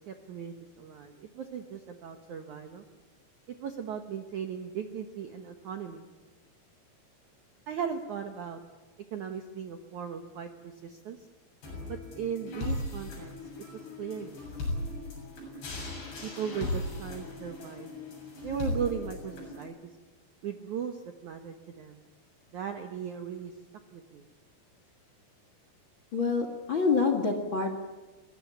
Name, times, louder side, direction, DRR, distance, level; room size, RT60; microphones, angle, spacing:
voice 1, 0.1-2.8 3.6-6.0 7.7-8.6 9.1-11.3 11.9-13.3 13.7-14.4 16.2-17.9 18.4-19.9 20.4-22.0 22.5-23.5 23.9-24.3, right 7 dB, 65° right, 6 dB, 1.9 m, -37 dB
sound 1, 11.6-19.6, left 2 dB, 65° left, 9.3 m, -37 dB
voice 2, 26.1-27.7, left 4 dB, 40° left, 6 dB, 1.9 m, -26 dB
23.0 x 18.5 x 9.6 m, 1.2 s
omnidirectional pair, 5.1 m